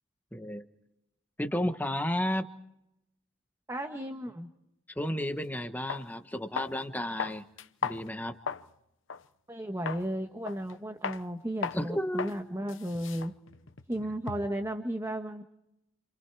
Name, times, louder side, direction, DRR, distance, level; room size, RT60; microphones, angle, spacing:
voice 1, 0.3-0.6 1.4-2.4 5.0-7.4 7.8-8.3 11.7-12.5, left 1 dB, 10° left, 6 dB, 1.3 m, -32 dB
voice 2, 3.7-4.5 9.5-13.4 13.9-15.4, right 1 dB, 15° right, 5 dB, 1.4 m, -34 dB
sound 1, 5.3-5.4 5.9-6.1 6.6-6.8 7.2-8.7 9.1-9.2 9.9-10.1 10.5-10.7 11.0-11.2 11.6-11.8 12.2-12.4 12.7-14.6, left 5 dB, 85° left, 0.9 m, -37 dB
29.0 x 27.0 x 4.8 m, 0.83 s
head